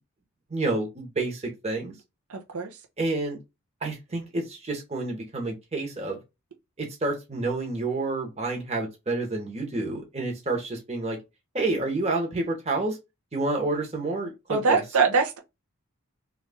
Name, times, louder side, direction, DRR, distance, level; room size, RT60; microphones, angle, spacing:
voice 1, 0.5-1.9 3.0-3.4 3.8-6.2 6.8-11.2 11.5-13.0 13.3-14.8, right 2 dB, 30° right, 1.0 m, -29 dB
voice 2, 2.3-2.7 14.5-15.4, right 4 dB, 80° right, 0.6 m, -23 dB
3.1 x 2.4 x 3.4 m
head